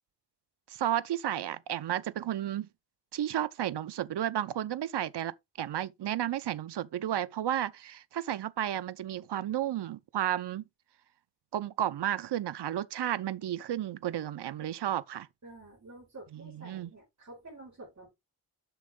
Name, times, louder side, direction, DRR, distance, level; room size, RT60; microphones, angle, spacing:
voice 1, 0.7-2.7 3.1-10.6 11.5-15.3 16.3-16.9, right 11 dB, 70° right, 0.7 m, -32 dB
voice 2, 15.4-18.1, right 2 dB, 40° right, 5.2 m, -49 dB
8.0 x 6.2 x 3.7 m
wide cardioid pair, 165°, 42 cm